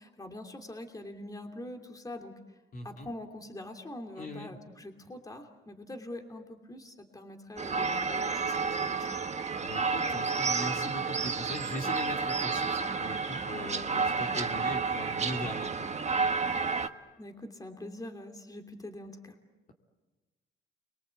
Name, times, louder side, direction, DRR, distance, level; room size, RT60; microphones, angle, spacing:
voice 1, 0.0-2.3 2.8-9.1 16.8-16.9 17.2-19.4, left 1 dB, 20° left, 4 dB, 2.9 m, -44 dB
voice 2, 2.7-3.1 4.2-4.6 9.6-15.9, left 1 dB, 45° left, 2 dB, 3.0 m, -40 dB
sound 1, 7.6-16.9, right 4 dB, 35° right, 1.2 m, -31 dB
29.5 x 23.5 x 8.2 m, 1.2 s
cardioid pair, 90°, 20 cm